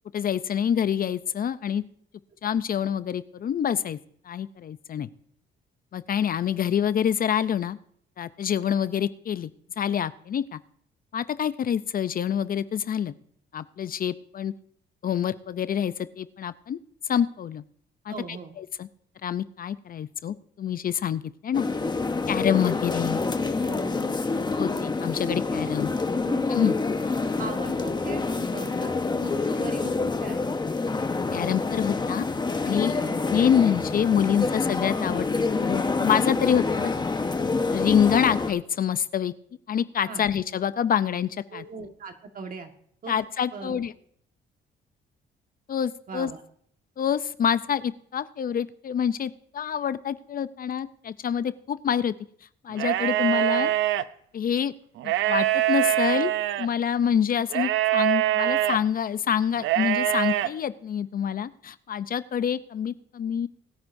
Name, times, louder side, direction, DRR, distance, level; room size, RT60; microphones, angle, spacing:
voice 1, 0.1-1.8 2.4-4.0 4.2-5.1 5.9-7.8 8.2-9.5 9.8-10.6 11.1-13.1 13.5-14.5 15.0-16.8 17.1-17.6 18.1-18.9 19.2-21.7 22.3-23.2 24.6-25.9 26.5-26.7 31.3-32.3 32.6-32.9 33.3-35.3 35.6-36.9 37.7-39.3 39.7-41.6 43.1-43.9 45.7-46.3 47.0-52.1 52.6-53.7 54.3-54.7 55.0-56.3 56.6-63.5, left 8 dB, 45° left, 15 dB, 0.5 m, -26 dB
voice 2, 18.1-18.5 23.6-24.1 25.6-25.7 26.2-26.7 27.4-30.6 33.0-33.2 40.1-40.3 41.5-42.7 43.0-43.1 43.5-43.8 46.1-46.4, right 4 dB, 45° right, 5 dB, 1.5 m, -39 dB
sound 1, 21.5-38.5, left 3 dB, 20° left, 1.0 m, -27 dB
sound 2, 52.7-54.0 55.0-56.7 57.5-58.8 59.6-60.5, right 14 dB, 80° right, 0.5 m, -24 dB
21.5 x 9.5 x 2.6 m, 0.66 s
cardioid pair, 90°, 20 cm